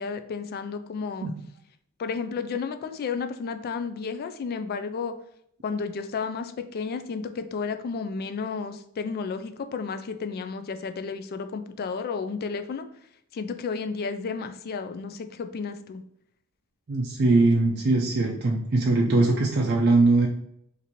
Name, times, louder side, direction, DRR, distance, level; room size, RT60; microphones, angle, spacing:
voice 1, 0.0-1.3 2.0-5.1 5.6-12.8 13.3-16.0, left 5 dB, 45° left, 8 dB, 0.3 m, -32 dB
voice 2, 16.9-20.3, right 2 dB, 45° right, -1 dB, 0.4 m, -21 dB
3.0 x 2.6 x 4.0 m, 0.71 s
head